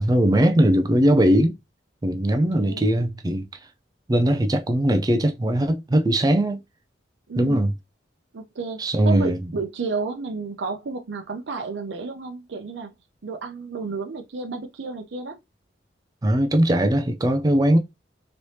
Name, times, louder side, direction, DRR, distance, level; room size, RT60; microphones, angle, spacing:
voice 1, 0.0-1.6 2.0-3.4 4.1-6.6 7.4-7.7 8.8-9.5 16.2-17.8, right 1 dB, 20° right, 0.4 m, -20 dB
voice 2, 2.6-3.0 7.3-7.6 8.3-12.9 13.2-15.4, right 4 dB, 75° right, 0.6 m, -31 dB
3.2 x 3.0 x 2.7 m
head